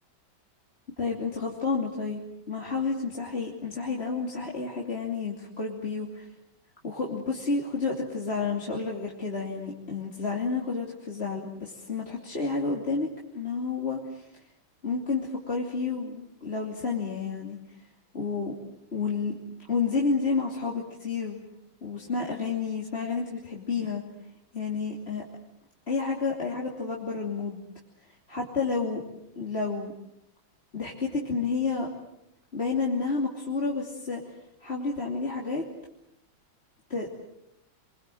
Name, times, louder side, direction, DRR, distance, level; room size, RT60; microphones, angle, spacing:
voice 1, 1.0-2.2 2.5-6.3 6.8-13.1 13.3-14.4 14.8-17.6 18.1-18.5 18.9-19.3 19.7-21.4 21.8-24.0 24.5-25.2 25.9-27.6 28.3-29.0 29.4-29.9 30.7-31.9 32.5-34.3 34.6-35.6 36.9-37.1, left 4 dB, 30° left, -2 dB, 3.2 m, -30 dB
29.0 x 23.0 x 7.8 m, 0.84 s
omnidirectional pair, 2.2 m